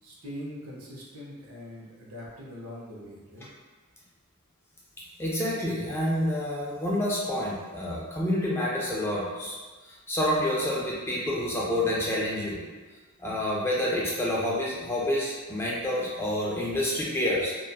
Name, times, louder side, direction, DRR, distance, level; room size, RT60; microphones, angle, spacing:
voice 1, 0.0-3.5, equal, 75° right, -4 dB, 0.6 m, -42 dB
voice 2, 5.2-9.6 9.8-12.6 13.2-17.5, left 1 dB, 10° left, -5 dB, 0.3 m, -28 dB
2.7 x 2.2 x 2.2 m, 1.3 s
head